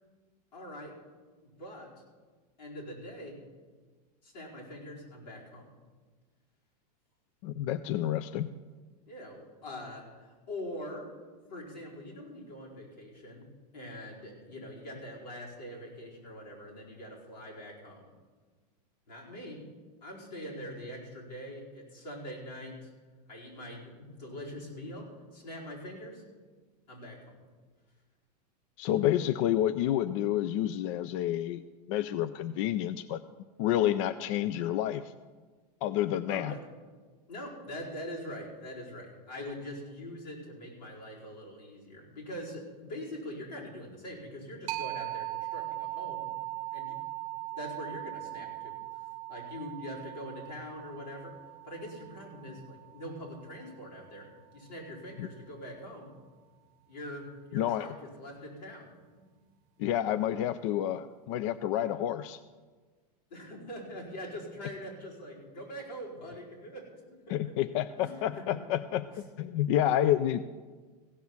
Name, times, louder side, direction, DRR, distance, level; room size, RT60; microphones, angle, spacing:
voice 1, 0.5-1.0 1.4-1.9 2.6-3.4 4.2-5.7 9.1-11.1 11.5-18.1 19.1-19.7 20.0-22.9 23.3-26.2 26.9-27.4 36.3-36.6 37.3-46.3 46.7-47.0 47.4-51.4 51.6-56.1 56.9-58.9 63.3-67.6 68.0-68.6 69.1-69.2, equal, 90° left, -4 dB, 4.8 m, -43 dB
voice 2, 7.4-8.5 28.8-31.6 31.9-33.2 33.6-35.1 35.8-36.5 55.2-55.3 57.5-57.9 59.8-62.4 67.3-69.1 69.4-70.5, left 12 dB, 50° left, 13 dB, 0.4 m, -29 dB
sound 1, 44.7-54.1, right 19 dB, 55° right, 0.7 m, -40 dB
16.0 x 6.1 x 7.2 m, 1.4 s
supercardioid pair, 145°, 21 cm